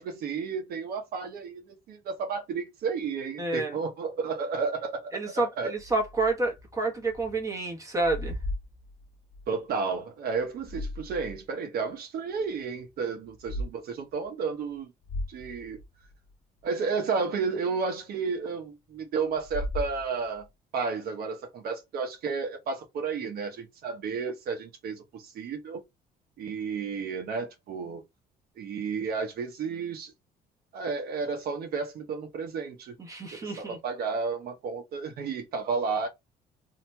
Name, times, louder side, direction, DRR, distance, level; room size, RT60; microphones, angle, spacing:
voice 1, 0.0-5.1 5.6-5.7 9.5-14.9 15.3-15.8 16.6-20.4 20.7-25.8 26.4-28.0 28.6-30.1 30.7-32.9 33.4-36.1, right 5 dB, 65° right, 0.9 m, -32 dB
voice 2, 3.4-3.7 5.1-8.4 33.0-33.8, right 2 dB, 20° right, 1.0 m, -29 dB
sound 1, 5.8-7.4 7.7-9.5 10.4-11.4 11.9-12.0 13.2-13.7 14.1-14.2 14.7-14.8 15.0-16.3 19.3-20.4, left 1 dB, 25° left, 0.5 m, -37 dB
2.9 x 2.8 x 2.2 m
cardioid pair, 110°, 17 cm